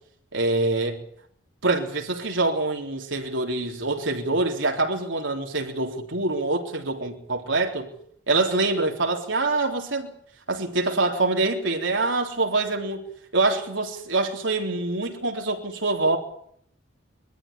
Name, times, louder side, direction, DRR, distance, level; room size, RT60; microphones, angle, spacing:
voice 1, 0.3-1.0 1.6-7.9 8.3-10.1 10.5-13.1 13.3-16.2, right 2 dB, 75° right, 3.6 m, -25 dB
23.0 x 14.0 x 9.9 m
head